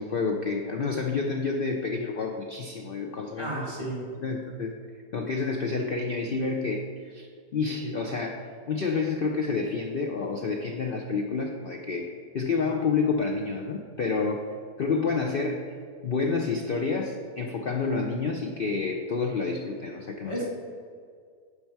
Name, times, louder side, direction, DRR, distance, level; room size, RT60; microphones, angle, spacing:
voice 1, 0.0-3.6 4.2-4.8 5.1-7.3 7.5-12.1 12.3-14.4 14.8-15.7 16.0-20.4, left 4 dB, 75° left, 2 dB, 0.5 m, -29 dB
voice 2, 3.4-4.0 20.3-20.5, right 1 dB, 20° right, -6 dB, 1.8 m, -32 dB
9.7 x 5.7 x 4.6 m, 2.1 s
omnidirectional pair, 1.7 m